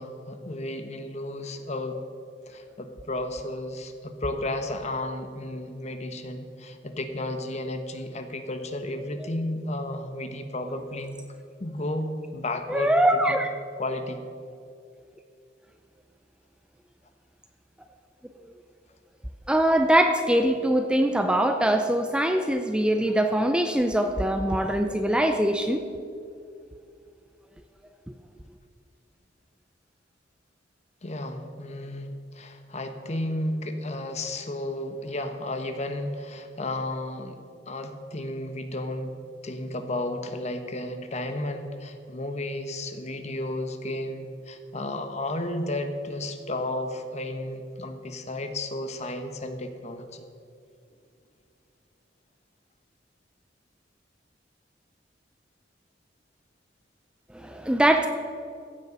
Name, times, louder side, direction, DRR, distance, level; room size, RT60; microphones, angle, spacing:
voice 1, 0.0-2.0 2.5-11.2 11.6-13.5 13.8-14.2 31.0-37.4 37.7-39.2 39.4-50.3, left 1 dB, 40° left, 7 dB, 1.0 m, -33 dB
voice 2, 12.7-13.5 19.5-25.8 57.3-58.1, right 1 dB, 5° right, 6 dB, 0.5 m, -22 dB
15.5 x 8.3 x 5.3 m, 2.5 s
head